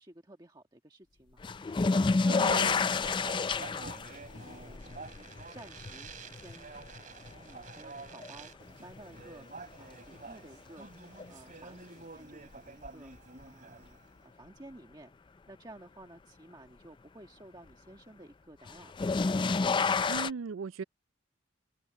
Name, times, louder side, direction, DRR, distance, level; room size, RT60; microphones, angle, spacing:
voice 1, 0.0-5.0 5.5-6.7 7.4-9.5 9.8-10.9 11.3-13.1 13.4-19.2, right 1 dB, 20° right, 1.5 m, -53 dB
sound 1, 1.4-8.5 8.9-9.6 11.2-11.3 12.8-12.9 18.7-20.3, left 4 dB, 25° left, 0.3 m, -30 dB
Speech, 1.7-14.1, right 3 dB, 40° right, 2.8 m, -49 dB
voice 2, 2.3-2.7 20.1-20.8, right 5 dB, 75° right, 0.4 m, -37 dB
head